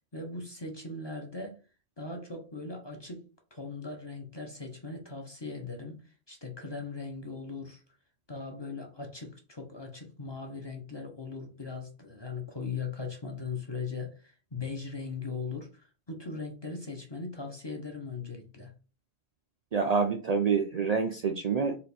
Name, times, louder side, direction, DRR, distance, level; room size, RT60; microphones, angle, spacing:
voice 1, 0.1-1.6 2.0-3.3 3.5-7.8 8.3-18.7, left 4 dB, 30° left, 2 dB, 0.6 m, -39 dB
voice 2, 19.7-21.8, right 5 dB, 90° right, 4 dB, 0.3 m, -27 dB
4.2 x 2.5 x 4.1 m, 0.35 s
omnidirectional pair, 1.3 m